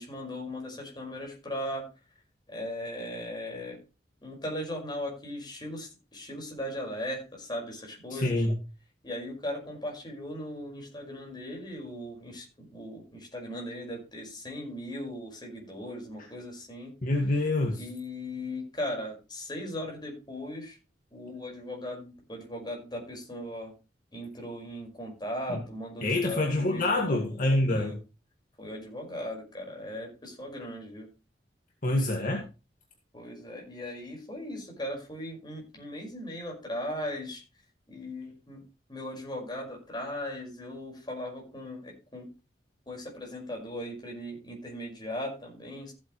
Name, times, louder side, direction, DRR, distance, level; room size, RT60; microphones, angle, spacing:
voice 1, 0.0-1.9 2.5-3.8 4.2-8.4 9.0-16.9 17.8-20.8 21.1-23.7 24.1-27.2 27.7-27.9 28.6-31.1 33.1-37.4 37.9-42.3 42.9-45.9, left 1 dB, 25° left, -1 dB, 5.4 m, -38 dB
voice 2, 8.1-8.5 17.0-17.8 25.5-25.6 26.0-28.0 31.8-32.5, left 2 dB, 50° left, 1 dB, 2.1 m, -26 dB
15.0 x 8.3 x 3.2 m, 0.30 s
head